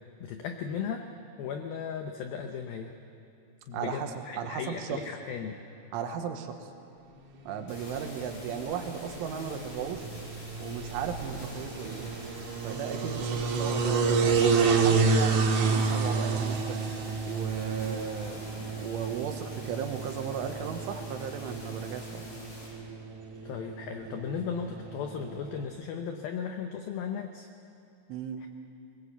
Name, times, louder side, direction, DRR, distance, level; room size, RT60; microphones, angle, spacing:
voice 1, 0.2-1.1 1.4-2.9 3.7-5.6 23.4-27.5 28.4-28.5, left 7 dB, 90° left, 5 dB, 2.1 m, -36 dB
voice 2, 3.7-4.1 4.4-5.0 5.9-6.6 7.5-10.1 10.6-12.0 12.6-16.8 17.3-22.3 28.1-28.4, right 7 dB, 80° right, 5 dB, 3.7 m, -36 dB
sound 1, 7.6-25.6, right 4 dB, 55° right, 2.2 m, -30 dB
sound 2, 7.7-22.7, left 1 dB, 50° left, 6.1 m, -46 dB
21.5 x 20.5 x 8.2 m, 2.7 s
omnidirectional pair, 5.6 m